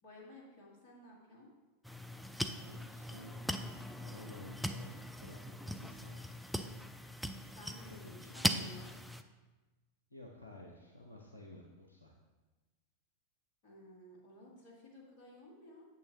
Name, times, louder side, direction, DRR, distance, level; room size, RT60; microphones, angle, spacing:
voice 1, 0.0-1.5 7.6-8.9 13.6-15.9, left 1 dB, 45° left, -2 dB, 2.0 m, -55 dB
sound 1, 1.8-9.2, equal, ahead, 0.4 m, -40 dB
voice 2, 2.6-6.4 7.9-8.8 10.1-12.2, left 2 dB, 80° left, 0 dB, 0.7 m, -53 dB
8.4 x 7.1 x 3.0 m, 1.2 s
figure-of-eight pair, 90°, 0 cm